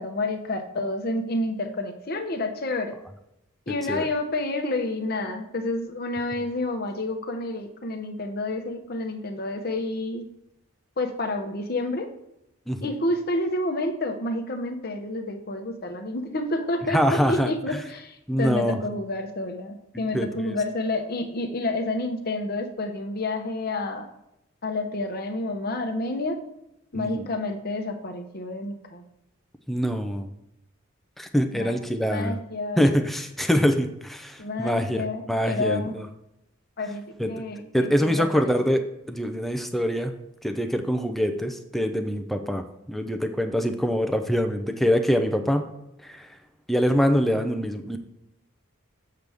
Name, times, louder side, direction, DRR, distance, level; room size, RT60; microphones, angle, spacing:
voice 1, 0.0-2.9 3.7-10.2 11.0-12.1 12.8-24.1 24.6-26.4 26.9-29.0 31.5-31.8 32.0-33.0 34.4-36.0 36.8-38.4, left 2 dB, 45° left, 5 dB, 0.8 m, -29 dB
voice 2, 16.9-17.5 18.3-18.8 19.9-20.3 26.9-27.2 29.7-30.3 31.2-32.4 32.8-35.0 35.3-36.1 37.2-37.3 37.7-38.8 39.1-40.1 40.4-45.7 46.0-46.3 46.7-48.0, equal, ahead, 6 dB, 0.5 m, -24 dB
7.7 x 6.7 x 3.5 m, 0.83 s
head